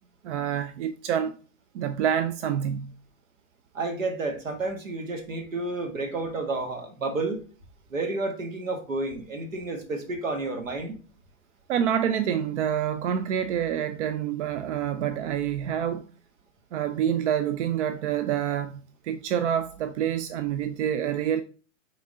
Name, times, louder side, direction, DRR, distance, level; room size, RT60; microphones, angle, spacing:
voice 1, 0.2-1.3 1.7-2.9 11.7-16.0 16.7-21.4, right 9 dB, 65° right, 0.6 m, -27 dB
voice 2, 3.7-7.4 7.9-11.0, right 2 dB, 90° right, 1.5 m, -31 dB
9.2 x 3.9 x 2.7 m
hypercardioid pair, 110°, 38 cm